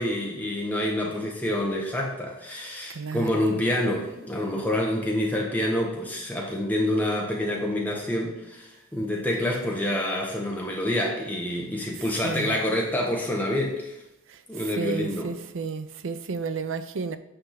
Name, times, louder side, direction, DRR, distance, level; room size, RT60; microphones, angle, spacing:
voice 1, 0.0-14.0 14.5-15.3, left 1 dB, 10° left, -2 dB, 1.0 m, -27 dB
voice 2, 2.9-3.5 12.2-12.6 14.8-17.2, right 4 dB, 60° right, 11 dB, 0.5 m, -32 dB
8.9 x 3.5 x 5.7 m, 0.91 s
head